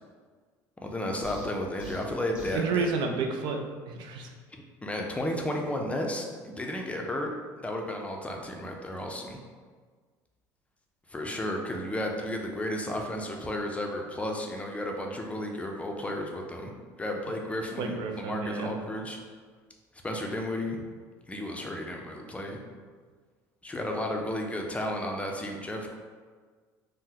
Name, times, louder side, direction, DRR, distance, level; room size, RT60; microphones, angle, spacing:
voice 1, 0.8-2.9 4.5-7.3 7.6-9.4 11.1-16.7 17.0-19.2 20.0-20.8 21.3-22.6 23.6-25.9, left 1 dB, 15° left, 1 dB, 0.5 m, -33 dB
sound 1, 1.2-2.7, equal, 10° right, 1.3 m, -43 dB
voice 2, 2.5-3.6 3.9-4.3 17.8-18.7, right 4 dB, 60° right, 3 dB, 0.4 m, -30 dB
3.5 x 2.1 x 2.8 m, 1.5 s
hypercardioid pair, 75°, 9 cm